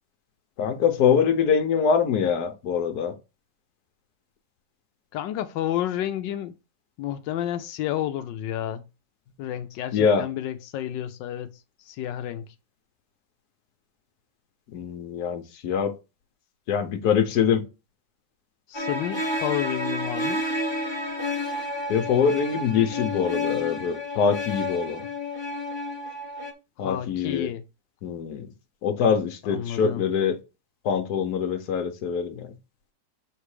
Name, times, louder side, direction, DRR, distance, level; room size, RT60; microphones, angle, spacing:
voice 1, 0.6-3.1 9.9-10.2 14.7-15.9 16.7-17.6 21.9-25.0 26.8-27.5 28.0-28.5 28.8-30.4 30.8-32.5, left 7 dB, 65° left, 1.4 m, -24 dB
voice 2, 5.1-6.6 7.0-8.8 9.4-11.5 11.9-12.4 18.7-20.4 26.8-27.6 29.4-30.0, left 12 dB, 85° left, 1.3 m, -30 dB
sound 1, 18.7-26.5, left 1 dB, 15° left, 1.1 m, -30 dB
7.3 x 3.3 x 4.9 m
omnidirectional pair, 1.9 m